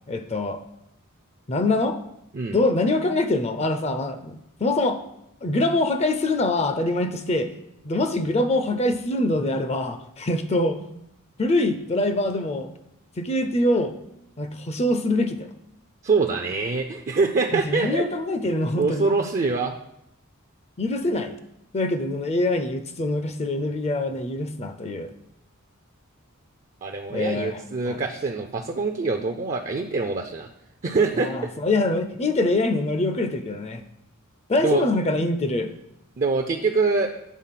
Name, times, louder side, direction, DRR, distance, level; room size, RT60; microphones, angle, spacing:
voice 1, 0.1-0.6 1.5-2.0 2.5-5.0 5.4-7.5 7.8-10.8 11.4-12.7 13.2-14.0 14.4-15.5 17.5-19.1 20.8-21.4 21.7-25.1 27.1-28.0 31.1-33.8 34.5-35.7, left 2 dB, 30° left, 9 dB, 0.5 m, -24 dB
voice 2, 16.0-18.1 18.7-19.7 26.8-30.5 30.8-31.3 34.6-34.8 36.2-37.1, right 4 dB, 35° right, 4 dB, 0.5 m, -24 dB
8.3 x 4.0 x 5.8 m, 0.81 s
head